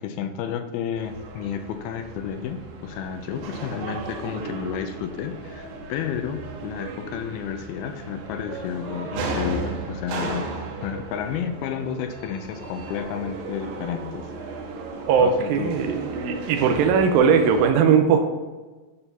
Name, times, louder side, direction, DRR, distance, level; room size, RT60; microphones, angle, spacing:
voice 1, 0.0-10.5 10.8-14.3 15.2-15.8, left 8 dB, 80° left, 7 dB, 2.4 m, -31 dB
sound 1, 0.9-17.7, right 3 dB, 70° right, 2.7 m, -35 dB
voice 2, 15.1-18.2, right 6 dB, 85° right, 5 dB, 2.1 m, -19 dB
11.0 x 4.4 x 6.7 m, 1.2 s
omnidirectional pair, 4.8 m